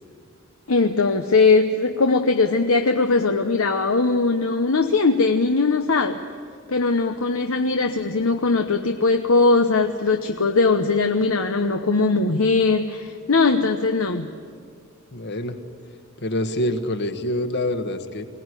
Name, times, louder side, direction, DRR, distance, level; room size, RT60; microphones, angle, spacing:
voice 1, 0.7-6.2 6.7-14.3, left 3 dB, 85° left, 6 dB, 1.0 m, -20 dB
voice 2, 15.1-15.6 16.2-18.3, left 1 dB, 55° left, 8 dB, 1.5 m, -26 dB
23.0 x 18.5 x 9.9 m, 2.1 s
head